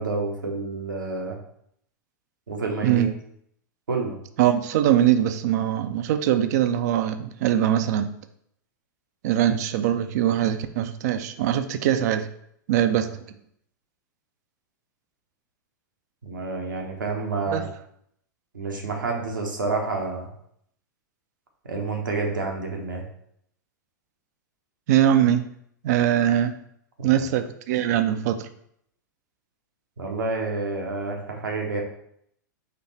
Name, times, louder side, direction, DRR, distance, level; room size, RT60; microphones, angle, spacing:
voice 1, 0.0-1.4 2.5-3.1 3.9-4.2 16.2-17.7 18.5-20.3 21.6-23.0 27.0-27.2 30.0-31.8, right 3 dB, 80° right, 1 dB, 1.1 m, -29 dB
voice 2, 4.4-8.1 9.2-12.3 12.7-13.1 17.5-17.6 24.9-25.4 25.8-26.5 27.0-28.5, right 11 dB, 55° right, 10 dB, 0.4 m, -22 dB
4.1 x 3.1 x 4.1 m, 0.70 s
hypercardioid pair, 100°, 10 cm